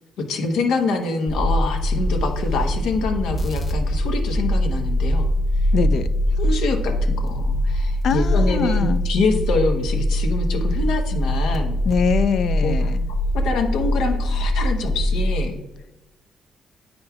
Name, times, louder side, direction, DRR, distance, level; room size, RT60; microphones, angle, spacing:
voice 1, 0.3-5.3 6.4-11.8 12.6-12.9 13.3-15.6, left 3 dB, 85° left, 4 dB, 1.0 m, -25 dB
sound 1, 1.3-15.5, left 1 dB, 40° left, 1.1 m, -22 dB
voice 2, 5.7-6.1 8.0-9.0 11.9-13.1, left 6 dB, 65° left, 12 dB, 0.4 m, -23 dB
8.7 x 5.2 x 2.3 m, 0.97 s
cardioid pair, 90°, 0 cm